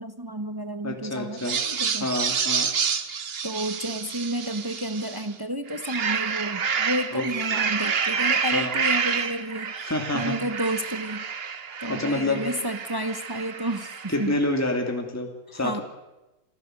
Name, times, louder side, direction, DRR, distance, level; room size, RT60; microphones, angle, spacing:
voice 1, 0.0-2.1 3.4-11.2 11.8-14.4 15.5-15.8, right 1 dB, 20° right, 9 dB, 0.8 m, -31 dB
voice 2, 0.8-1.6 2.0-2.7 7.1-7.3 8.5-8.7 9.8-10.4 11.9-12.4 14.1-15.8, left 2 dB, 10° left, 3 dB, 2.5 m, -27 dB
sound 1, 1.4-5.3 5.7-14.4, right 6 dB, 40° right, 1.0 m, -28 dB
26.0 x 15.0 x 7.8 m, 1.0 s
omnidirectional pair, 1.9 m